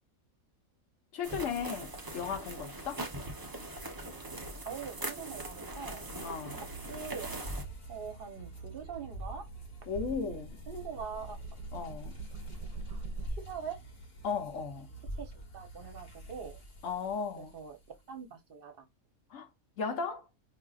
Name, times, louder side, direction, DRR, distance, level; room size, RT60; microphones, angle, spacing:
voice 1, 1.1-3.0 6.2-6.7 9.9-10.6 11.7-12.2 14.2-14.9 16.8-17.6 19.3-19.5 19.8-20.3, left 6 dB, 65° left, 1.2 m, -36 dB
sound 1, 1.2-7.6, right 2 dB, 30° right, 0.4 m, -41 dB
voice 2, 4.6-6.0 6.9-7.3 7.9-9.4 10.2-11.4 12.5-13.0 13.4-13.8 15.2-16.6 17.4-17.8 18.1-18.8, right 6 dB, 45° right, 0.9 m, -43 dB
sound 2, 5.3-18.1, right 2 dB, 50° left, 1.2 m, -47 dB
sound 3, 7.5-13.3, right 2 dB, 75° right, 1.0 m, -46 dB
4.8 x 2.7 x 2.3 m
omnidirectional pair, 1.5 m